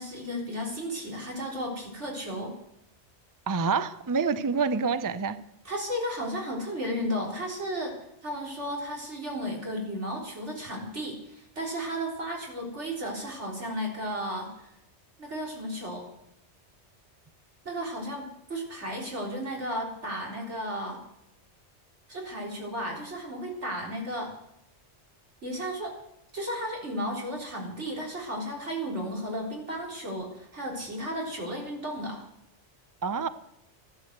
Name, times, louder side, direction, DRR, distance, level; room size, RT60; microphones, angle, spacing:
voice 1, 0.0-2.5 5.6-8.0 8.2-14.7 15.2-16.1 17.6-21.0 22.1-24.3 25.4-26.0 26.3-32.3, equal, 80° right, -1 dB, 4.2 m, -34 dB
voice 2, 3.5-5.4 33.0-33.3, right 5 dB, 25° right, 13 dB, 0.6 m, -27 dB
14.0 x 12.0 x 8.0 m, 0.82 s
omnidirectional pair, 1.2 m